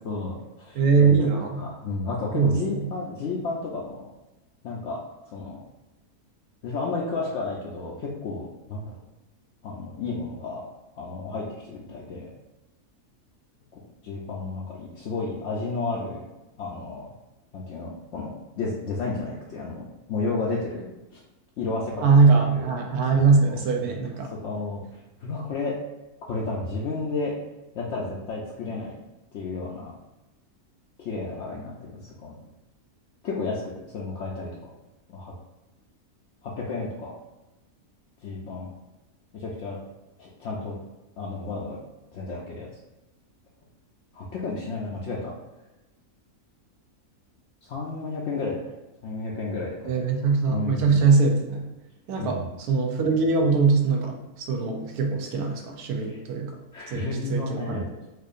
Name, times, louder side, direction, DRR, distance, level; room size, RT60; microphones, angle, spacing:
voice 1, 0.0-1.3 1.6-4.1 4.6-5.0 5.3-5.6 6.6-8.9 9.6-10.6 11.0-12.3 13.7-16.3 16.6-17.1 17.5-20.9 21.1-21.2 21.6-22.7 23.4-23.9 24.4-25.7 26.3-27.3 27.7-28.9 29.3-29.9 31.0-32.4 33.2-34.5 35.1-35.3 36.4-37.1 38.2-38.7 39.3-39.8 40.2-40.8 41.2-41.8 42.1-42.7 44.1-45.3 47.7-48.6 49.0-49.9 50.5-51.1 52.2-52.5 56.1-56.2 56.7-57.9, left 3 dB, 65° left, -4 dB, 0.7 m, -32 dB
voice 2, 0.7-1.6 2.3-2.8 22.0-24.3 49.8-51.6 52.1-52.4 52.7-56.5 56.9-58.0, right 4 dB, 80° right, 2 dB, 1.1 m, -22 dB
4.5 x 2.5 x 2.4 m, 1.0 s
omnidirectional pair, 1.6 m